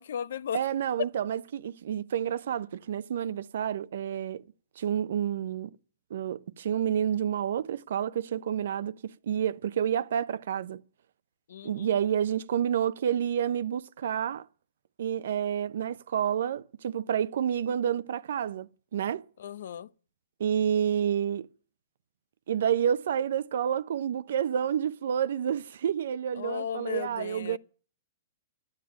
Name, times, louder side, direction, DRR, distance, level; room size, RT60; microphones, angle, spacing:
voice 1, 0.0-0.7 11.5-11.9 19.4-19.9 26.4-27.6, left 9 dB, 75° left, 0.7 m, -36 dB
voice 2, 0.5-4.4 4.8-5.7 6.1-10.8 11.6-14.5 15.0-19.3 20.4-21.5 22.5-27.6, right 9 dB, 70° right, 0.7 m, -29 dB
11.5 x 9.0 x 9.9 m
hypercardioid pair, 140°, 0 cm